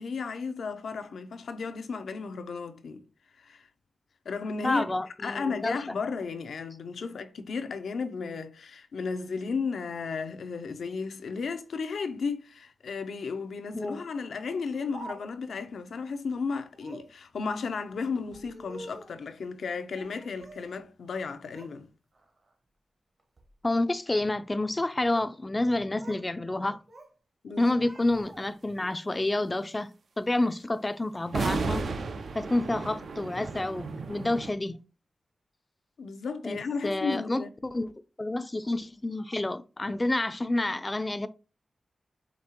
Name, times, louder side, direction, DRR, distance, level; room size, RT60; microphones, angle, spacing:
voice 1, 0.0-3.0 3.4-3.7 4.3-4.8 5.2-21.9 27.4-27.7 36.0-37.5, left 5 dB, 85° left, 0.5 m, -34 dB
voice 2, 4.6-6.0 13.7-14.0 23.6-26.8 27.6-29.9 30.2-31.9 32.3-34.8 36.4-37.9 38.2-41.3, left 2 dB, 25° left, 0.3 m, -29 dB
Speech, 14.5-15.6 16.7-17.2 18.2-19.2 19.9-20.7 21.0-21.8 22.1-22.5 23.2-23.5 24.6-25.4 25.6-26.3 26.6-27.1 27.5-28.7, right 2 dB, 55° right, 1.1 m, -48 dB
sound 1, 31.3-34.5, right 4 dB, 75° right, 0.4 m, -33 dB
5.1 x 2.8 x 2.9 m
wide cardioid pair, 85°, 0 cm